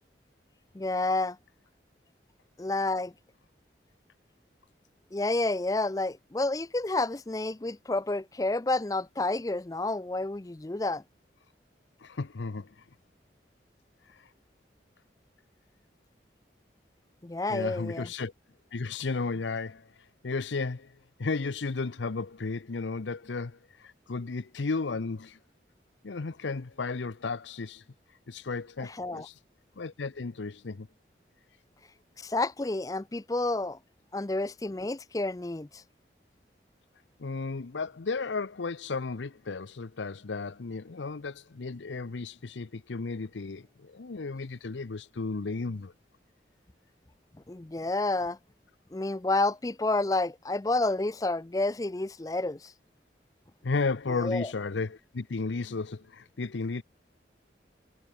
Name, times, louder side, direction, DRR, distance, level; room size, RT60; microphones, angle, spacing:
voice 1, 0.7-1.4 2.6-3.1 5.1-11.0 17.2-18.1 28.8-29.3 32.2-33.8 34.1-35.8 47.5-48.4 48.9-52.7 54.1-54.5, left 2 dB, 20° left, 0.4 m, -30 dB
voice 2, 12.0-12.8 14.1-14.3 17.5-18.3 18.7-25.4 26.0-27.8 28.3-29.4 29.8-30.9 37.2-45.9 53.6-56.8, left 4 dB, 85° left, 0.7 m, -34 dB
head